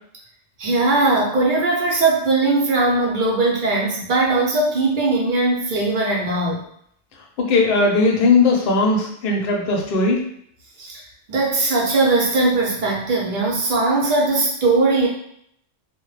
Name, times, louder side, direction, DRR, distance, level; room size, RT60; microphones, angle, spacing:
voice 1, 0.6-6.6 10.8-11.0 11.3-15.1, right 3 dB, 50° right, -3 dB, 0.7 m, -19 dB
voice 2, 7.4-10.2, left 3 dB, 60° left, 0 dB, 0.7 m, -18 dB
2.1 x 2.0 x 3.1 m, 0.68 s
omnidirectional pair, 1.3 m